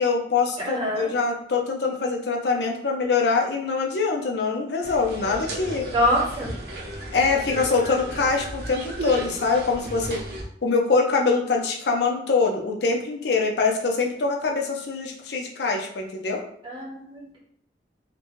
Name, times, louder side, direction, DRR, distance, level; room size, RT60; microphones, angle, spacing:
voice 1, 0.0-5.9 7.1-10.2 10.6-16.4, left 4 dB, 70° left, 1 dB, 0.5 m, -24 dB
voice 2, 0.6-1.1 5.9-6.5 16.6-17.4, equal, 30° right, -3 dB, 0.9 m, -25 dB
sound 1, 4.8-10.4, right 1 dB, 60° right, 0.7 m, -35 dB
3.9 x 2.1 x 3.0 m, 0.65 s
head